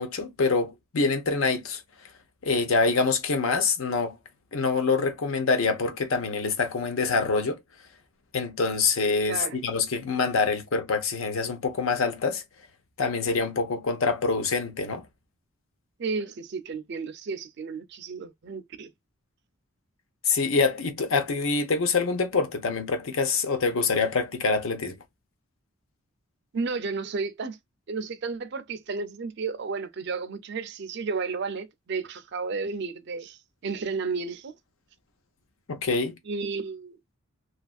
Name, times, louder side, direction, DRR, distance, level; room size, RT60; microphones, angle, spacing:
voice 1, 0.0-1.8 2.4-4.2 4.5-7.6 8.3-12.4 13.0-15.1 20.2-25.0 35.7-36.1, left 4 dB, 70° left, 0.7 m, -25 dB
voice 2, 9.3-9.6 16.0-18.9 26.5-27.6 27.9-34.5 36.3-36.9, right 4 dB, 50° right, 0.4 m, -32 dB
2.8 x 2.4 x 2.3 m
head